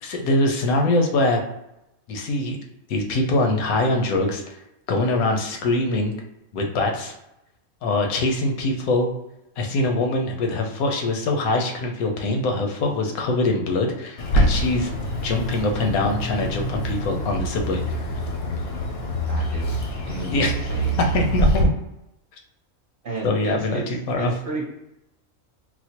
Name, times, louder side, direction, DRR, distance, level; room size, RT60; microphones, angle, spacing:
voice 1, 0.0-1.4 2.1-2.6 2.9-4.6 4.9-6.2 6.5-7.1 7.8-9.1 9.6-14.9 15.2-17.8 20.3-20.5 21.1-21.7 23.2-24.3, left 2 dB, 85° left, 2 dB, 1.1 m, -23 dB
Bird, 14.2-21.6, equal, 60° left, 0.7 m, -25 dB
voice 2, 19.3-19.8 20.1-20.4 20.7-21.0 23.0-23.8 24.2-24.6, right 2 dB, 45° right, -4 dB, 0.9 m, -32 dB
4.3 x 2.1 x 2.8 m, 0.87 s
omnidirectional pair, 1.5 m